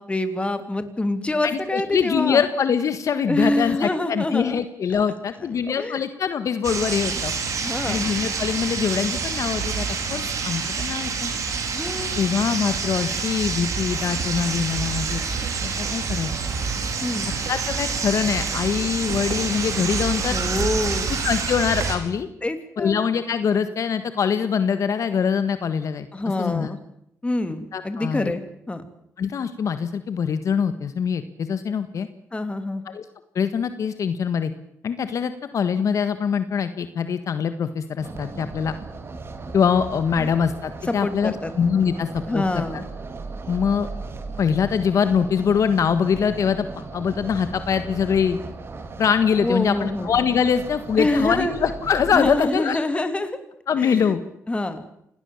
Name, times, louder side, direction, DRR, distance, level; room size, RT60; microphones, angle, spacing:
voice 1, 0.0-2.4 3.3-4.6 5.5-6.0 7.6-8.1 11.7-12.2 17.0-17.3 20.3-21.1 22.4-22.9 26.1-26.8 27.2-28.4 28.7-28.8 32.3-32.8 40.2-40.3 40.9-41.5 42.3-42.8 49.4-50.1 51.0-51.5 52.1-53.4 53.8-54.1 54.5-54.8, left 2 dB, 20° left, 9 dB, 3.1 m, -26 dB
voice 2, 1.7-7.3 7.8-11.3 12.2-15.2 15.6-16.3 17.5-20.4 21.1-22.3 22.8-26.1 26.4-26.7 27.7-28.3 29.2-32.1 32.8-33.0 33.3-34.5 34.8-38.7 39.5-42.6 43.5-43.9 44.4-48.4 49.0-52.8 53.7-54.2, left 7 dB, 65° left, 10 dB, 1.6 m, -23 dB
sound 1, 6.6-22.0, right 5 dB, 65° right, 4.8 m, -27 dB
sound 2, 38.0-52.4, right 3 dB, 45° right, 3.7 m, -37 dB
27.0 x 18.5 x 7.3 m, 0.77 s
cardioid pair, 80°, 6 cm